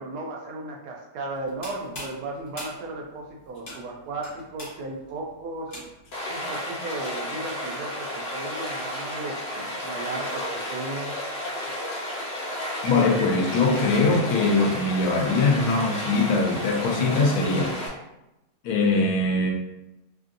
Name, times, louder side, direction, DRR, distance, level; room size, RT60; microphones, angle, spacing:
voice 1, 0.0-5.7 6.3-11.2, right 2 dB, 90° right, 0 dB, 1.1 m, -35 dB
sound 1, 1.3-6.2, equal, 45° left, 1.2 m, -42 dB
Stream, 6.1-17.9, equal, 60° left, 0.7 m, -32 dB
voice 2, 12.8-17.7 18.6-19.5, left 3 dB, 80° left, 1 dB, 1.1 m, -22 dB
3.0 x 2.5 x 2.5 m, 0.93 s
omnidirectional pair, 1.6 m